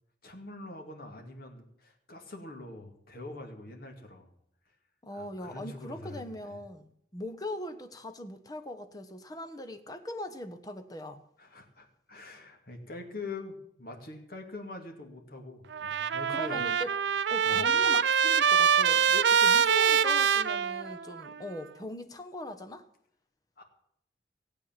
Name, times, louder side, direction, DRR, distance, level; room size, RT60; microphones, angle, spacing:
voice 1, 0.2-4.3 5.1-6.6 11.4-16.6 17.5-17.7 18.7-18.9 23.6-23.7, left 2 dB, 55° left, 3 dB, 2.5 m, -44 dB
voice 2, 5.0-11.2 16.3-16.9 17.3-22.8, left 1 dB, 20° left, 8 dB, 1.0 m, -40 dB
Trumpet, 15.7-21.3, right 7 dB, 85° right, 0.5 m, -25 dB
16.5 x 8.4 x 7.4 m, 0.71 s
head